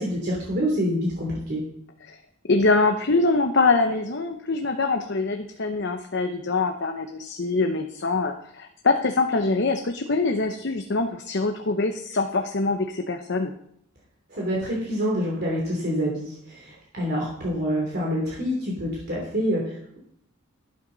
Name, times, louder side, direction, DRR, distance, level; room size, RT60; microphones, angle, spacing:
voice 1, 0.0-1.6 14.3-20.0, equal, 50° right, -3 dB, 3.1 m, -27 dB
voice 2, 2.5-13.5, left 3 dB, 55° left, 5 dB, 0.8 m, -24 dB
12.0 x 11.5 x 4.0 m, 0.71 s
head